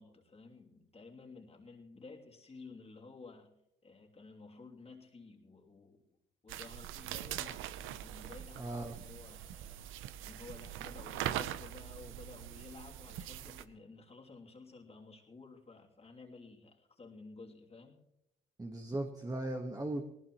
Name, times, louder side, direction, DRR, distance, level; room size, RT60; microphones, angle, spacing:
voice 1, 0.0-3.5 3.8-6.0 6.4-9.9 10.2-18.0, left 3 dB, 30° left, 1 dB, 2.9 m, -53 dB
sound 1, 6.5-13.6, right 12 dB, 90° right, 0.7 m, -42 dB
voice 2, 8.6-9.0 18.6-20.0, right 1 dB, 20° right, 3 dB, 1.5 m, -38 dB
19.0 x 19.0 x 3.1 m, 0.84 s
cardioid pair, 90°, 20 cm